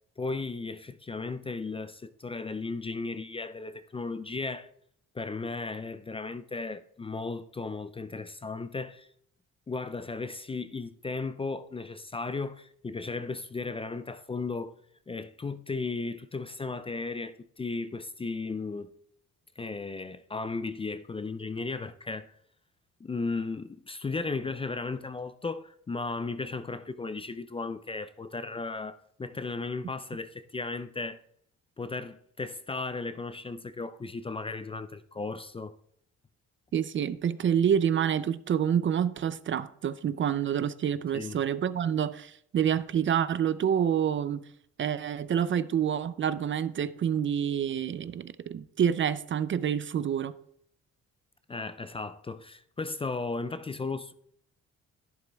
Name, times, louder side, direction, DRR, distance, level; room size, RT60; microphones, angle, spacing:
voice 1, 0.2-4.7 5.1-9.1 9.7-14.7 15.1-18.9 19.6-22.4 23.0-31.2 31.8-35.7 41.1-41.4 51.5-54.1, left 3 dB, 20° left, 0.4 m, -35 dB
voice 2, 36.7-44.4 44.8-50.3, right 8 dB, 40° right, 0.4 m, -27 dB
11.0 x 11.0 x 2.3 m
cardioid pair, 90°, 30 cm